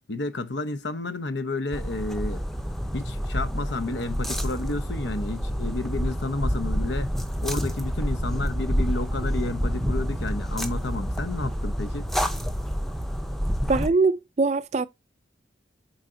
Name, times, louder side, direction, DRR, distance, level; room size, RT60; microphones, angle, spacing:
voice 1, 0.0-2.4 2.9-7.1 7.4-12.1, left 2 dB, 75° left, 1.0 m, -31 dB
sound 1, 1.7-13.9, equal, ahead, 0.7 m, -28 dB
voice 2, 13.7-14.9, right 3 dB, 35° right, 0.4 m, -22 dB
8.3 x 5.0 x 2.7 m
head